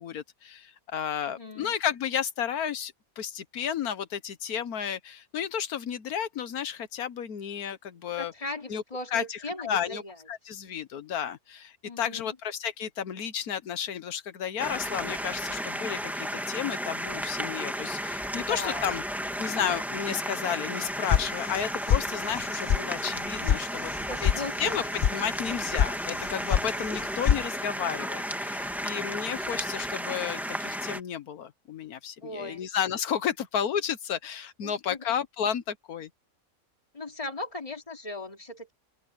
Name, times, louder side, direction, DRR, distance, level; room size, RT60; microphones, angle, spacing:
voice 1, 0.0-8.3 8.7-8.8 9.1-10.0 10.3-19.0 19.4-23.9 24.2-24.3 24.6-24.8 25.1-36.1, left 8 dB, 90° left, 1.5 m, -32 dB
voice 2, 1.3-1.8 8.1-10.2 11.8-12.4 18.4-18.9 24.1-24.7 26.9-27.2 32.2-32.6 34.6-35.1 36.9-38.7, left 2 dB, 25° left, 2.9 m, -38 dB
sound 1, 14.6-31.0, equal, ahead, 1.3 m, -33 dB
sound 2, 21.1-21.6 21.9-22.4 22.7-22.8 23.1-23.6 23.9-24.4 24.7-25.1 25.5-25.9 26.2-26.7 26.9-27.4, left 9 dB, 65° left, 0.4 m, -24 dB
open air
omnidirectional pair, 1.5 m